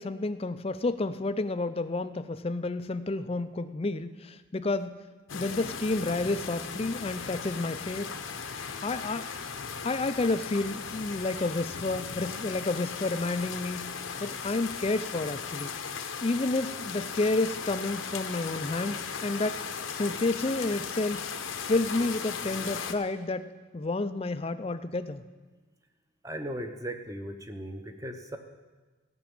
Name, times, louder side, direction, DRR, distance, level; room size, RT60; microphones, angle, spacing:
voice 1, 0.0-5.1 5.3-8.1 8.8-9.3 9.8-15.7 16.2-19.6 19.9-21.3 21.6-25.2, left 2 dB, 30° left, 11 dB, 0.4 m, -30 dB
sound 1, 5.3-22.9, left 6 dB, 70° left, 0.9 m, -37 dB
voice 2, 26.2-28.4, right 1 dB, 15° right, 5 dB, 0.8 m, -37 dB
14.5 x 6.2 x 8.6 m, 1.3 s
head